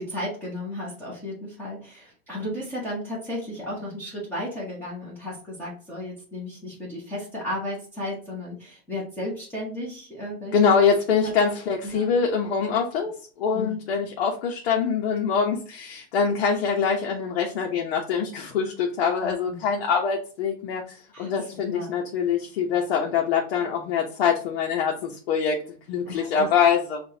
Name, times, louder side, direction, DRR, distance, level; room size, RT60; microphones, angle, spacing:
voice 1, 0.0-10.6 11.2-11.3 11.8-12.1 13.5-13.7 19.2-19.6 21.1-21.3 21.7-21.9 26.0-26.5, left 1 dB, 5° left, -6 dB, 1.1 m, -34 dB
voice 2, 10.5-13.1 13.4-25.6 25.9-27.0, left 6 dB, 70° left, 0 dB, 1.0 m, -24 dB
6.0 x 2.5 x 2.8 m, 0.41 s
supercardioid pair, 170°, 30 cm